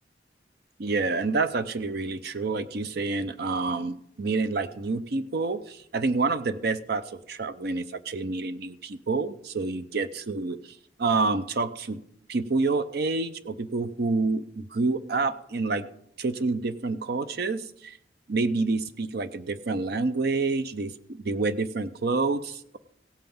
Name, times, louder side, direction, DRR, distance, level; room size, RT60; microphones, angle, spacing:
voice 1, 0.8-10.6 11.0-12.0 12.3-15.9 16.2-18.0 18.3-22.8, right 3 dB, 60° right, 13 dB, 0.6 m, -28 dB
16.5 x 5.8 x 7.0 m, 0.73 s
head